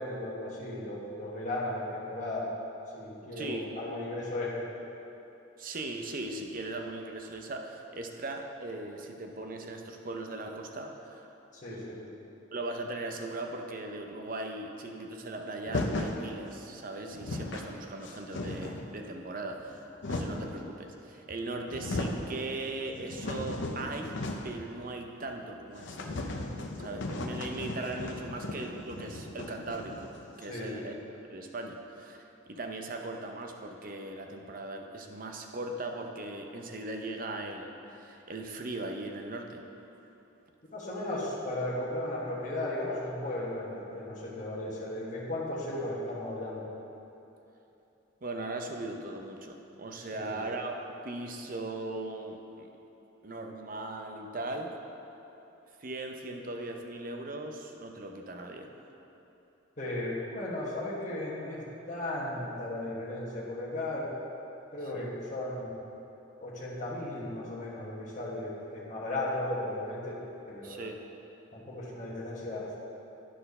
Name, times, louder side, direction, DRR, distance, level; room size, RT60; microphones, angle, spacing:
voice 1, 0.0-2.5 2.9-4.7 11.5-12.0 30.5-30.8 40.7-46.7 50.1-50.4 59.8-64.1 64.7-65.7 66.4-70.2 70.5-70.9 71.5-72.7, left 1 dB, 40° left, -6 dB, 1.3 m, -35 dB
voice 2, 5.6-11.3 11.7-12.0 12.5-24.1 24.4-26.2 26.8-30.1 30.4-31.0 31.3-39.6 48.2-52.7 53.2-54.7 55.8-58.7 64.9-65.1 70.6-71.0, right 2 dB, 45° right, 3 dB, 0.6 m, -39 dB
sound 1, 15.7-16.2 16.8-16.9 17.1-17.7 18.0-18.9 19.6-20.5 21.3-21.4 21.7-22.3 22.7-24.6 24.9-25.0 25.3-25.4 25.8-30.3, left 2 dB, 70° left, 0.6 m, -36 dB
10.0 x 4.4 x 5.4 m, 3.0 s
head